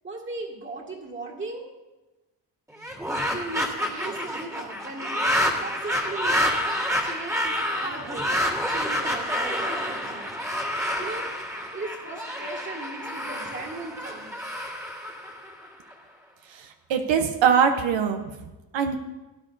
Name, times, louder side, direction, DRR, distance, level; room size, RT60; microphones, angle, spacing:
voice 1, 0.0-1.7 3.3-5.3 5.6-6.5 7.0-10.4 11.0-11.3 11.7-14.4, right 2 dB, 25° right, -1 dB, 2.0 m, -37 dB
sound 1, 2.7-15.9, equal, 5° right, 1.6 m, -28 dB
voice 2, 16.5-18.3 18.7-19.0, right 7 dB, 80° right, 6 dB, 0.8 m, -22 dB
17.0 x 10.5 x 2.6 m, 1.1 s
wide cardioid pair, 170°, 44 cm